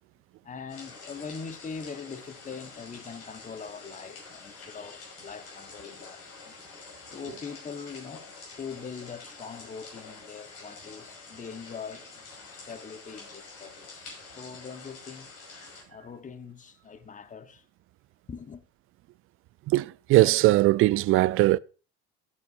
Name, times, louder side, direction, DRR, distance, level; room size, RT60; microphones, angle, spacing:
voice 1, 0.4-6.6 7.1-14.1 14.3-15.3 15.9-17.6 18.3-18.6, left 6 dB, 25° left, 1.3 m, -42 dB
sound 1, 0.7-15.8, left 4 dB, 60° left, 5.9 m, -47 dB
voice 2, 19.7-21.6, right 17 dB, 45° right, 0.4 m, -20 dB
14.0 x 9.5 x 2.7 m
hypercardioid pair, 70°, 29 cm